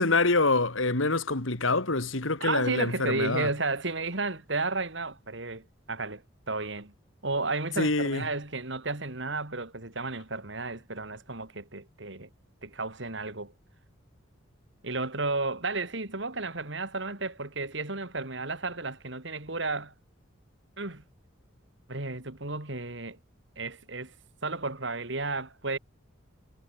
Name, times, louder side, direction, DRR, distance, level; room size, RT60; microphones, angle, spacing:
voice 1, 0.0-3.5 7.8-8.2, left 3 dB, 80° left, 2.5 m, -26 dB
voice 2, 2.4-6.9 7.2-12.3 12.6-13.5 14.8-19.9 20.8-21.0 21.9-23.2 23.6-24.1 24.4-25.8, right 3 dB, 65° right, 3.0 m, -33 dB
head